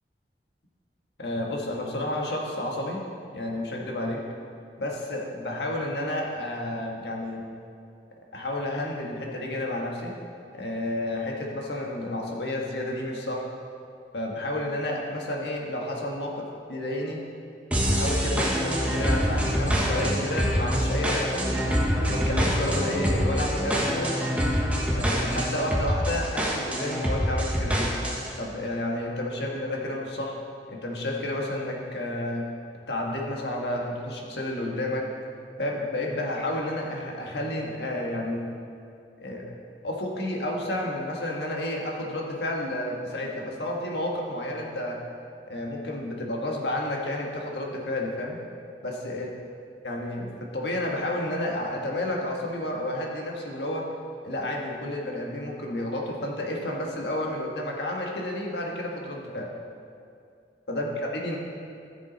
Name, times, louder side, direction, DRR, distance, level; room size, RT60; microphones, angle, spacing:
voice 1, 1.2-3.0 3.3-4.2 4.8-7.4 8.3-10.1 10.5-13.4 14.1-17.2 17.9-21.5 22.0-24.1 24.9-27.9 28.4-30.3 30.7-32.4 32.9-35.0 35.6-38.5 39.2-39.5 39.8-45.0 45.5-48.4 48.8-49.3 49.8-53.9 54.2-59.5 60.7-61.4, left 1 dB, 75° left, -1 dB, 1.6 m, -31 dB
sound 1, 17.7-28.3, equal, 10° right, 1.2 m, -25 dB
14.0 x 7.3 x 4.1 m, 2.4 s
head